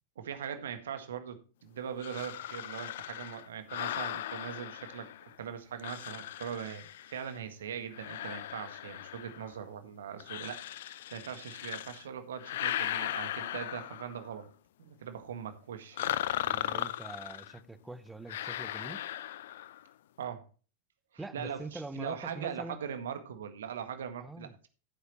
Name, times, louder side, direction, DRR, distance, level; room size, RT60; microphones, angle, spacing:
voice 1, 0.2-5.1 5.4-14.5 14.8-16.2 20.2-20.4 21.1-24.7, right 8 dB, 60° right, 1.7 m, -41 dB
sound 1, 2.0-5.4 5.8-7.4 7.9-9.6 10.2-12.0 12.4-14.3 16.0-17.6 18.3-19.8, left 12 dB, 55° left, 0.4 m, -38 dB
voice 2, 16.5-19.0 21.2-22.8 24.2-24.6, right 2 dB, 5° right, 0.9 m, -44 dB
14.5 x 8.0 x 3.1 m
figure-of-eight pair, 90°, 0 cm